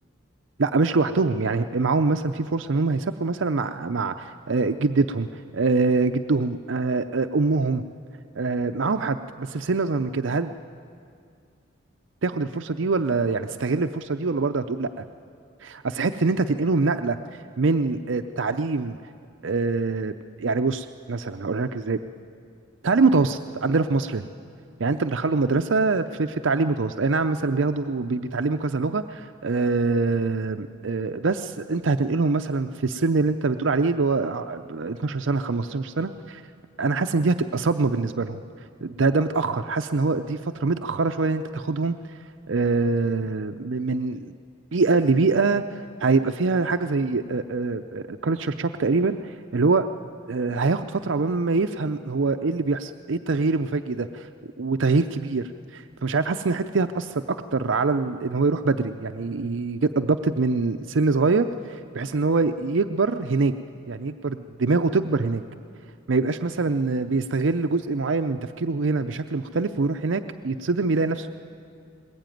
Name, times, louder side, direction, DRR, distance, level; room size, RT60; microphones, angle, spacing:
voice 1, 0.6-7.8 8.4-10.5 12.2-15.0 15.6-17.2 17.6-19.0 19.4-22.0 22.8-24.2 24.8-36.4 36.8-38.4 38.8-42.0 42.5-44.3 44.7-49.9 50.3-54.3 54.6-63.5 63.9-65.4 66.1-71.3, right 3 dB, 70° right, 8 dB, 0.6 m, -24 dB
20.5 x 20.0 x 9.2 m, 2.3 s
head